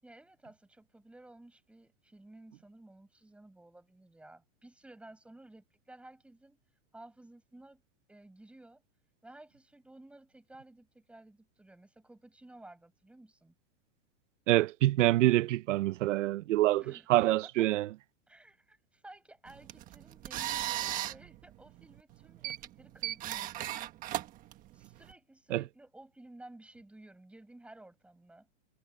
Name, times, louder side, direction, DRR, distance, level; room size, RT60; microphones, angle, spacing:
voice 1, 0.0-6.6 6.9-7.8 8.1-8.8 9.2-13.5 16.8-17.7 18.3-23.7 24.7-28.5, right 2 dB, 5° right, 7.2 m, -55 dB
voice 2, 14.5-16.8 17.1-17.9 25.5-25.6, right 16 dB, 80° right, 0.7 m, -26 dB
sound 1, 19.5-25.1, right 13 dB, 20° right, 1.4 m, -38 dB
supercardioid pair, 170°, 36 cm